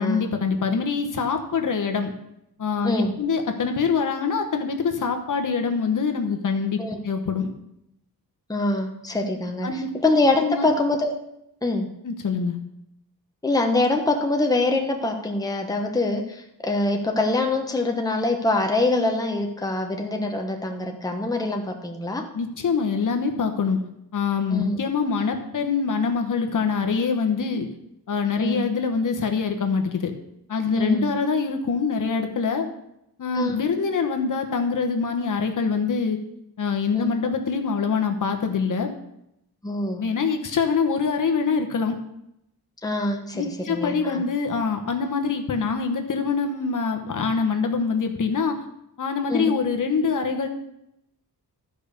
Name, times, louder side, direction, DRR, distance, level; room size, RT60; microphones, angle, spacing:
voice 1, 0.0-2.1 2.6-6.8 7.0-7.5 9.6-9.9 10.4-10.7 12.0-12.6 22.3-23.8 24.1-27.7 28.1-30.1 30.5-32.7 33.2-36.2 36.6-38.9 40.0-41.9 43.3-48.6 49.0-50.5, left 5 dB, 50° left, 4 dB, 1.2 m, -24 dB
voice 2, 8.5-11.2 11.6-11.9 13.4-22.2 24.5-24.8 28.4-28.6 30.7-31.1 33.3-33.6 36.9-37.1 39.6-40.0 42.8-44.2 49.3-49.5, left 2 dB, 10° left, 2 dB, 1.1 m, -24 dB
12.5 x 5.3 x 6.6 m, 0.81 s
wide cardioid pair, 135°, 39 cm